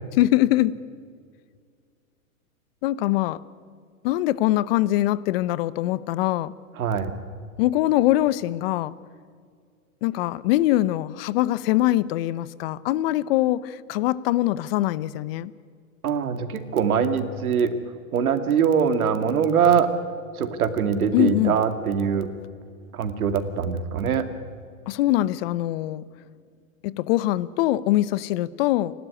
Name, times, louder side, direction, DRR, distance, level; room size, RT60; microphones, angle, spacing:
voice 1, 0.2-0.8 2.8-3.4 4.0-6.5 7.6-8.9 10.0-15.5 21.1-21.6 24.9-26.0 26.8-28.9, left 15 dB, 45° left, 19 dB, 0.8 m, -23 dB
voice 2, 6.8-7.1 16.0-17.7 18.1-19.9 20.4-22.3 22.9-24.3, right 7 dB, 80° right, 9 dB, 2.4 m, -22 dB
30.0 x 12.5 x 9.9 m, 2.1 s
hypercardioid pair, 135°, 43 cm